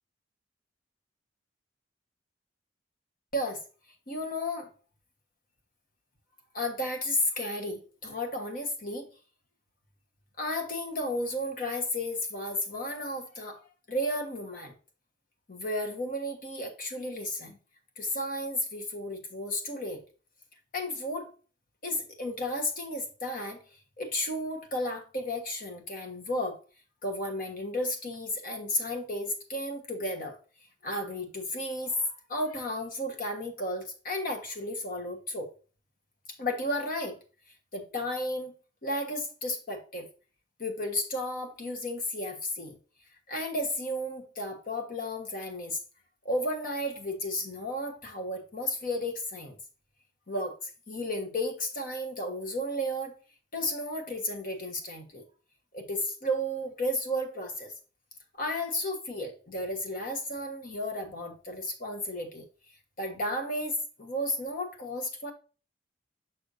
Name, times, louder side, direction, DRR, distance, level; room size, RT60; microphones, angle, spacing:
voice 1, 4.1-4.7 6.5-9.1 10.4-13.6 13.9-14.7 15.5-17.6 18.0-20.0 20.7-21.3 21.8-23.6 24.0-26.6 27.0-30.4 30.8-35.5 36.4-37.2 37.7-38.5 38.8-40.1 40.6-42.7 43.3-45.8 46.2-49.5 50.3-53.1 53.5-55.2 55.7-57.7 58.4-62.4 63.0-65.3, left 1 dB, 50° left, 4 dB, 1.3 m, -33 dB
6.3 x 6.1 x 2.6 m, 0.36 s
head